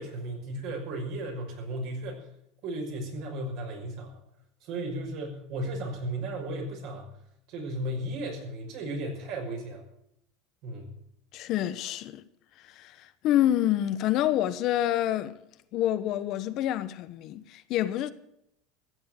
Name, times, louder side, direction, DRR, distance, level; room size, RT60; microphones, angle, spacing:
voice 1, 0.0-2.3 2.6-4.1 4.6-7.1 7.5-9.8 10.6-11.0, right 1 dB, 65° right, 6.0 m, -35 dB
voice 2, 11.3-12.2 12.6-15.4 15.7-18.1, left 12 dB, 55° left, 1.1 m, -27 dB
15.5 x 7.8 x 9.4 m
supercardioid pair, 105°, 0 cm